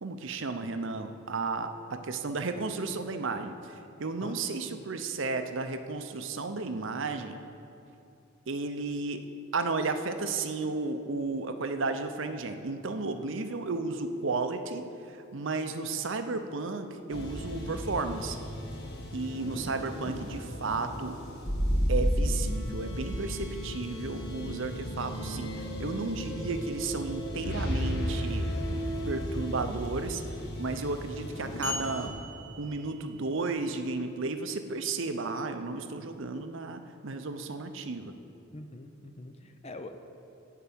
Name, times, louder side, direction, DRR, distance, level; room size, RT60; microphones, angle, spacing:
voice 1, 0.0-7.4 8.5-9.2 9.5-18.4 19.1-21.2 21.9-28.5 29.1-30.2 30.6-32.1 32.6-38.1, right 3 dB, 60° right, 8 dB, 0.6 m, -33 dB
sound 1, 17.1-32.1, equal, 50° left, 1.6 m, -33 dB
sound 2, 31.6-33.5, left 3 dB, 10° left, 1.9 m, -39 dB
voice 2, 38.5-40.0, left 2 dB, 30° left, 8 dB, 0.5 m, -44 dB
12.5 x 4.7 x 8.6 m, 2.7 s
head